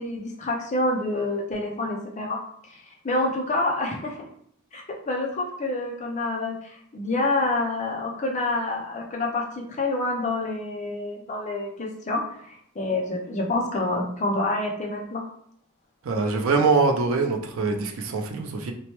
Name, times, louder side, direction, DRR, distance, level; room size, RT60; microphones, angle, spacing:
voice 1, 0.0-2.4 2.7-4.3 4.7-15.2, left 2 dB, 35° left, -1 dB, 0.6 m, -27 dB
voice 2, 16.0-18.7, right 4 dB, 70° right, 4 dB, 0.4 m, -23 dB
3.0 x 2.1 x 3.0 m, 0.67 s
head